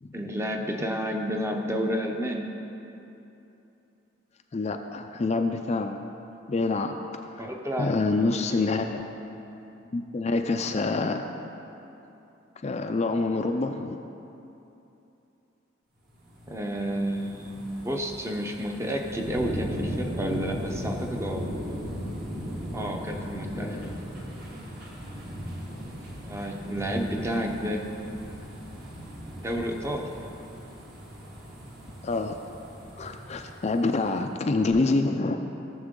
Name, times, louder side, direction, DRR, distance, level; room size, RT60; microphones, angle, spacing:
voice 1, 0.1-2.4 7.4-8.4 16.5-21.4 22.7-23.8 26.2-27.9 29.4-30.1, equal, 15° right, 2 dB, 0.7 m, -31 dB
voice 2, 4.5-6.0 6.5-6.9 7.4-7.5 7.8-9.0 9.9-11.2 12.6-14.0 23.5-23.9 25.6-25.9 32.0-32.4 33.0-35.4, left 3 dB, 35° left, 4 dB, 0.4 m, -27 dB
sound 1, 16.1-34.3 34.7-34.8, equal, 50° right, 1.9 m, -38 dB
16.0 x 7.0 x 3.7 m, 2.9 s
head